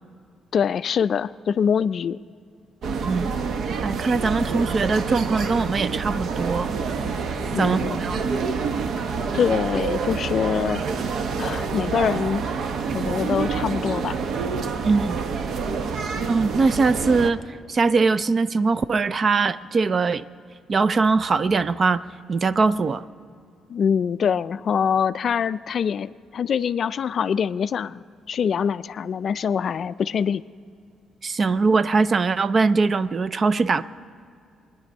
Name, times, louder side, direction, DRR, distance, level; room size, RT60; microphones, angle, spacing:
voice 1, 0.5-2.2 7.5-8.0 9.3-10.8 11.4-12.4 12.9-14.2 23.7-30.4, left 7 dB, 50° left, 15 dB, 0.3 m, -24 dB
sound 1, 2.8-17.3, right 5 dB, 60° right, 0.8 m, -27 dB
voice 2, 3.0-3.4 3.8-6.7 7.6-8.2 14.8-15.2 16.3-17.4 17.7-20.2 20.7-22.0 22.3-23.0 31.2-33.8, right 4 dB, 35° right, 16 dB, 0.4 m, -21 dB
24.0 x 10.5 x 5.4 m, 2.4 s
cardioid pair, 125°, 0 cm